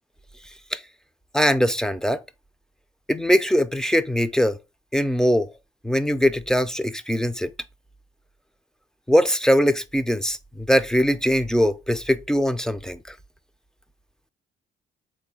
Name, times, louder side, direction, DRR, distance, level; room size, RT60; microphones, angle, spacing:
voice 1, 1.3-2.2 3.1-4.6 4.9-5.5 5.8-7.5 9.1-13.1, equal, 5° left, 0.4 m, -21 dB
3.9 x 3.2 x 3.6 m
cardioid pair, 90°, 20 cm